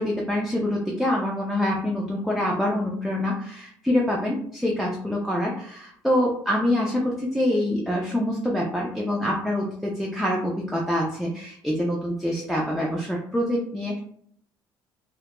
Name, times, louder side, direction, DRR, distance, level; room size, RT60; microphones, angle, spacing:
voice 1, 0.0-14.0, left 1 dB, ahead, -3 dB, 0.3 m, -25 dB
2.1 x 2.1 x 2.9 m, 0.64 s
cardioid pair, 145°, 8 cm